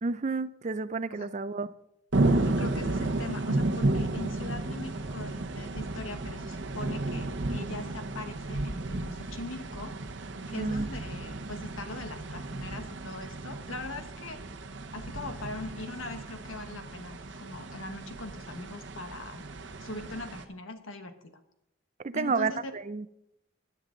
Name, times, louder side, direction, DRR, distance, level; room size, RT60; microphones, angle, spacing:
voice 1, 0.0-1.7 10.5-10.9 22.0-23.1, right 4 dB, 35° right, 0.4 m, -31 dB
sound 1, 2.1-20.4, right 2 dB, 60° right, 0.9 m, -33 dB
voice 2, 2.4-9.9 10.5-14.4 14.9-19.4 19.8-21.3 22.1-22.6, left 2 dB, 85° left, 1.4 m, -41 dB
17.0 x 10.5 x 3.9 m
head